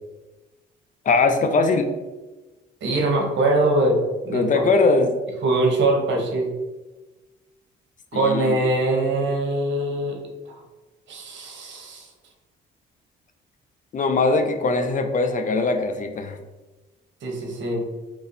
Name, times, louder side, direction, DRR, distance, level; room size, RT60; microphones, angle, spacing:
voice 1, 1.1-1.9 4.3-5.2 8.1-8.6 13.9-16.4, left 3 dB, 40° left, 6 dB, 0.5 m, -21 dB
voice 2, 2.8-4.0 4.2-4.6 5.4-6.5 8.1-10.2 11.1-12.1 17.2-17.8, right 2 dB, 65° right, 1 dB, 1.0 m, -22 dB
3.0 x 2.6 x 4.0 m, 1.2 s
cardioid pair, 90°, 20 cm